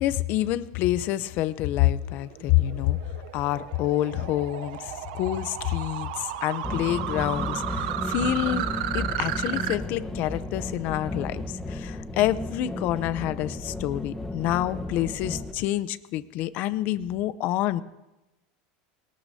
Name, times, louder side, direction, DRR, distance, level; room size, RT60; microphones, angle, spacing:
voice 1, 0.0-3.0 3.3-8.7 8.9-17.8, left 14 dB, 50° left, 15 dB, 0.6 m, -27 dB
sound 1, 1.7-9.8, right 12 dB, 80° right, 0.7 m, -34 dB
sound 2, 6.6-15.5, left 2 dB, 5° left, 1.1 m, -34 dB
21.5 x 18.5 x 2.8 m, 1.0 s
supercardioid pair, 145°, 4 cm